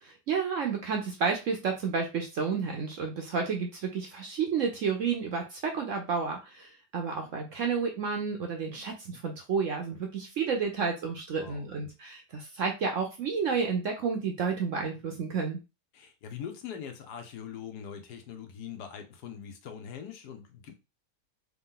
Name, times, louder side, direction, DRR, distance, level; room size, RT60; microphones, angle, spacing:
voice 1, 0.0-15.6, right 5 dB, 65° right, 0.8 m, -31 dB
voice 2, 15.9-20.7, left 8 dB, 70° left, 1.2 m, -42 dB
3.6 x 2.8 x 3.7 m
omnidirectional pair, 1.8 m